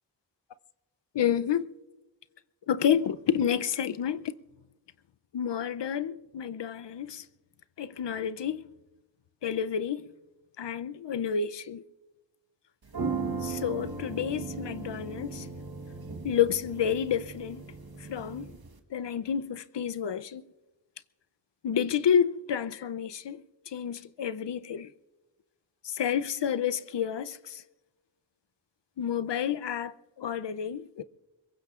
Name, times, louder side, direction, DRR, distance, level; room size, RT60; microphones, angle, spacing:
voice 1, 1.1-1.7 2.7-4.3 5.3-7.3 7.8-8.7 9.4-10.1 10.6-11.8 13.4-15.5 16.2-17.6 18.0-18.6 18.9-20.5 21.6-24.9 25.8-27.6 29.0-31.0, left 8 dB, 70° left, 0.6 m, -30 dB
sound 1, 12.8-18.8, right 4 dB, 55° right, 1.3 m, -37 dB
24.5 x 22.0 x 2.5 m
wide cardioid pair, 55°, 45 cm